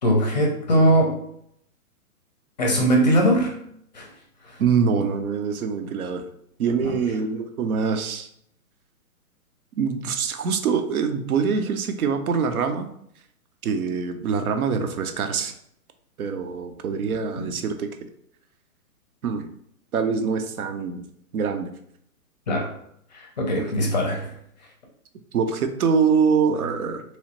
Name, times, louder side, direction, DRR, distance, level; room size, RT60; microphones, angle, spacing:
voice 1, 0.0-1.2 2.6-3.6 3.9-4.1 4.4-4.6 6.8-6.9 17.4-17.5 22.5-22.7 23.1-24.3, equal, 30° left, 1 dB, 0.5 m, -21 dB
voice 2, 4.6-6.3 6.6-8.3 9.8-12.9 13.6-15.5 16.2-17.9 19.2-19.5 19.9-21.0 21.3-21.7 25.3-27.0, right 6 dB, 75° right, 7 dB, 0.7 m, -24 dB
3.1 x 3.0 x 2.9 m, 0.71 s
hypercardioid pair, 155°, 44 cm